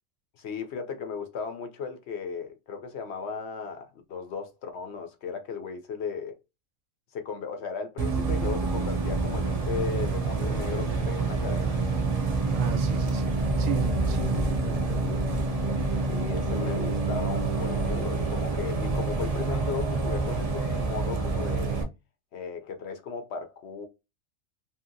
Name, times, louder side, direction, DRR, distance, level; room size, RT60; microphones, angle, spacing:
voice 1, 0.4-6.3 7.1-11.8 16.0-21.8 22.3-23.9, left 5 dB, 65° left, 0.8 m, -36 dB
Bus, 8.0-21.8, right 3 dB, 70° right, 0.3 m, -27 dB
voice 2, 12.5-15.3, right 9 dB, 85° right, 1.0 m, -35 dB
2.8 x 2.7 x 2.6 m
omnidirectional pair, 1.4 m